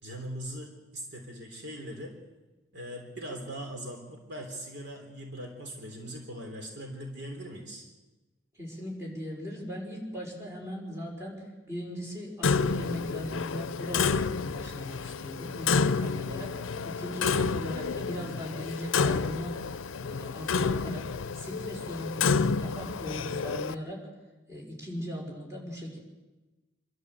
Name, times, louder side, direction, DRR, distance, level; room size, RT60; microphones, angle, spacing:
voice 1, 0.0-2.1 2.7-7.8, equal, 60° right, 2 dB, 3.4 m, -40 dB
voice 2, 8.6-19.6 20.0-21.1 21.3-24.1 24.5-26.0, equal, 15° right, -2 dB, 5.4 m, -38 dB
Clock, 12.4-23.7, left 5 dB, 90° left, 0.6 m, -29 dB
26.5 x 13.0 x 8.1 m, 1.1 s
head